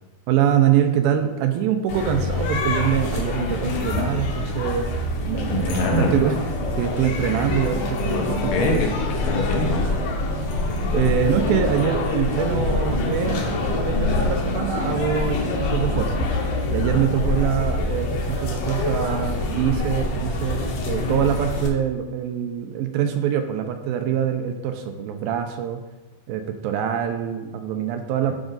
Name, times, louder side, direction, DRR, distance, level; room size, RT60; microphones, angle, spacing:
voice 1, 0.3-6.4 6.8-8.8 10.9-13.4 13.7-16.3 16.7-25.8 26.3-28.3, right 9 dB, 80° right, 6 dB, 2.3 m, -24 dB
sound 1, 1.9-21.7, left 2 dB, 65° left, 2.4 m, -25 dB
voice 2, 5.5-6.2 8.1-9.9 16.9-17.0 28.3-28.4, left 2 dB, 80° left, 1 dB, 3.2 m, -25 dB
12.0 x 5.1 x 3.9 m, 1.1 s
omnidirectional pair, 4.5 m